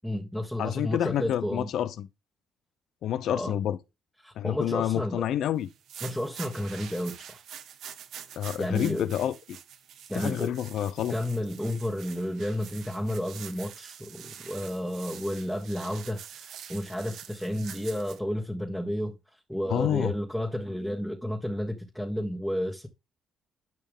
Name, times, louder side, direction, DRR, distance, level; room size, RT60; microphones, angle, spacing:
voice 1, 0.0-1.7 3.3-3.5 4.2-5.3 6.0-7.4 8.6-9.1 10.1-10.6 11.1-22.9, equal, 5° left, 1.5 m, -32 dB
voice 2, 0.6-2.1 3.0-3.8 4.4-5.7 8.4-9.6 10.1-11.1 19.7-20.1, left 11 dB, 75° left, 0.6 m, -28 dB
sound 1, 5.7-18.2, right 9 dB, 75° right, 1.2 m, -46 dB
10.5 x 5.7 x 3.6 m
cardioid pair, 90°, 0 cm